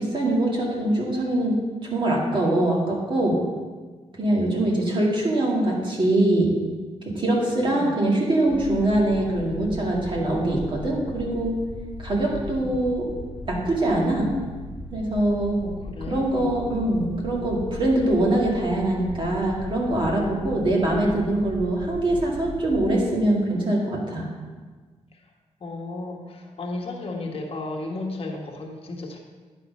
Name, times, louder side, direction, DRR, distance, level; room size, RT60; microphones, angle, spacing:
voice 1, 0.0-3.4 4.2-6.5 7.1-11.6 12.0-13.1 13.5-14.3 14.9-15.6 16.1-24.3, right 1 dB, 45° right, -3 dB, 2.3 m, -23 dB
voice 2, 7.7-8.0 12.4-12.9 15.6-16.6 25.1-25.2 25.6-29.2, left 2 dB, 50° left, 1 dB, 1.4 m, -34 dB
sound 1, 8.5-23.0, left 2 dB, 10° right, 1.2 m, -38 dB
10.5 x 4.3 x 5.3 m, 1.4 s
cardioid pair, 70°, 12 cm